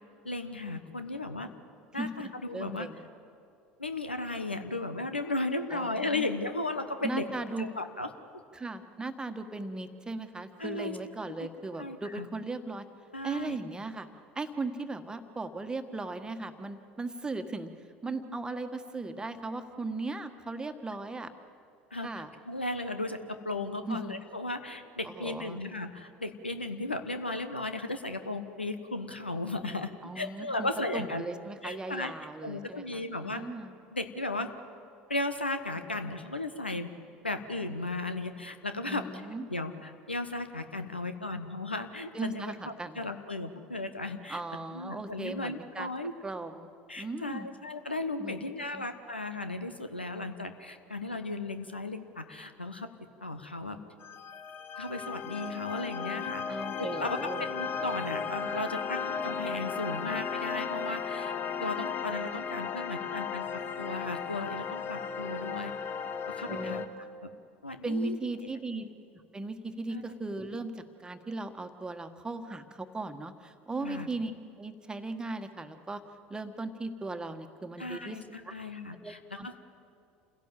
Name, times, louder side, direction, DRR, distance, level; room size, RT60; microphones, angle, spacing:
voice 1, 0.2-1.5 1.9-2.9 3.8-7.3 7.6-8.1 10.6-11.0 11.4-11.5 11.8-12.3 13.1-13.6 21.9-31.2 31.6-32.1 32.4-33.4 33.9-34.5 35.1-36.9 37.2-39.1 39.5-44.4 44.7-46.1 46.9-52.9 53.2-53.8 54.8-61.3 61.6-65.7 66.3-66.8 67.2-67.3 67.6-68.1 68.7-68.8 69.9-70.0 73.8-74.1 77.8-79.6, left 2 dB, 90° left, 9 dB, 1.1 m, -35 dB
voice 2, 1.9-3.0 5.7-6.2 7.0-7.7 8.5-12.8 13.2-14.1 14.3-17.7 18.0-21.3 22.0-22.3 23.8-24.2 25.0-25.6 30.0-33.7 38.9-39.5 42.1-43.1 44.3-45.9 46.2-46.7 47.0-47.5 48.2-48.9 56.5-57.4 66.5-66.9 67.8-68.9 69.3-74.3 74.6-76.0 76.3-78.2 79.0-79.6, right 2 dB, 15° right, 8 dB, 1.5 m, -37 dB
sound 1, 54.0-66.9, left 6 dB, 35° left, 1.2 m, -35 dB
28.0 x 16.5 x 7.6 m, 2.4 s
figure-of-eight pair, 70°, 6 cm